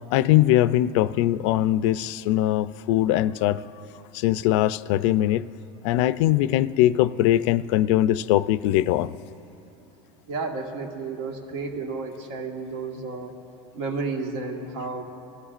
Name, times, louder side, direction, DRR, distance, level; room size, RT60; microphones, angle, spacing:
voice 1, 0.0-3.6 4.1-5.5 5.8-9.1, left 13 dB, 70° left, 15 dB, 0.4 m, -21 dB
voice 2, 10.3-13.3 13.7-15.0, right 4 dB, 75° right, 2 dB, 1.6 m, -32 dB
23.5 x 15.0 x 2.5 m, 2.9 s
cardioid pair, 165°, 16 cm